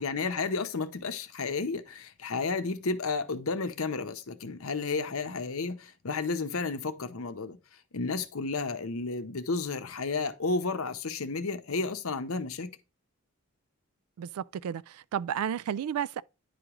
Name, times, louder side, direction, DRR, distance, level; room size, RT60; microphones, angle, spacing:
voice 1, 0.0-7.6 7.9-12.7, left 4 dB, 70° left, 0.8 m, -32 dB
voice 2, 14.2-16.2, right 9 dB, 80° right, 0.3 m, -32 dB
10.0 x 4.9 x 3.0 m
head